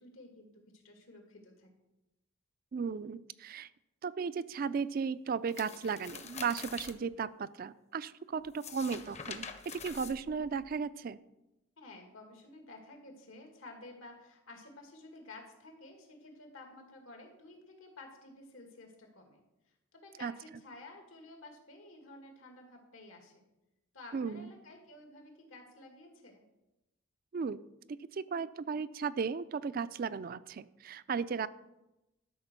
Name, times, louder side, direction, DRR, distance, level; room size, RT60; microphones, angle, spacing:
voice 1, 0.0-1.7 11.8-23.5 23.9-26.4, left 2 dB, 85° left, 3 dB, 2.2 m, -52 dB
voice 2, 2.7-3.7 4.0-11.2 20.2-20.3 24.1-24.5 27.3-27.6 27.9-31.5, right 5 dB, 45° right, 15 dB, 0.3 m, -35 dB
sound 1, 5.5-6.9 8.4-10.7, left 6 dB, 35° left, 0.7 m, -45 dB
12.5 x 4.5 x 6.6 m, 0.94 s
head